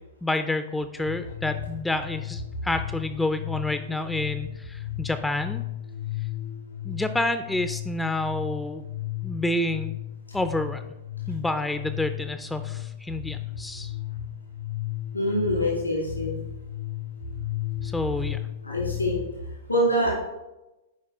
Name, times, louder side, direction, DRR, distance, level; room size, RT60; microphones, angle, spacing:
voice 1, 0.2-5.6 6.8-8.9 9.2-9.9 10.3-10.8 11.3-13.9 17.8-18.4, left 2 dB, 5° left, 9 dB, 0.4 m, -29 dB
sound 1, 1.1-19.3, left 14 dB, 60° left, 0.5 m, -35 dB
voice 2, 15.1-16.3 18.6-19.2 19.7-20.1, equal, 85° left, -4 dB, 2.3 m, -24 dB
9.6 x 4.8 x 3.5 m, 0.97 s
figure-of-eight pair, 100°, 0 cm